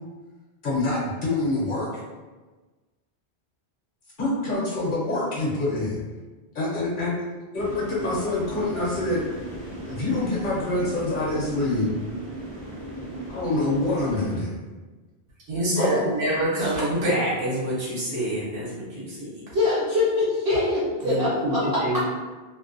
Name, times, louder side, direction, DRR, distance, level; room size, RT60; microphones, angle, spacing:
voice 1, 0.6-2.0 4.2-6.0 6.5-7.2 7.5-9.2 9.8-11.9 13.3-14.6 15.8-16.1, left 2 dB, 55° left, -5 dB, 0.8 m, -26 dB
sound 1, 7.6-14.4, right 1 dB, 45° right, 0.8 m, -37 dB
voice 2, 15.5-19.3 21.0-22.0, right 1 dB, 75° right, -7 dB, 1.1 m, -26 dB
voice 3, 19.5-21.6, left 2 dB, 30° right, -10 dB, 0.4 m, -23 dB
2.5 x 2.1 x 2.5 m, 1.3 s
omnidirectional pair, 1.1 m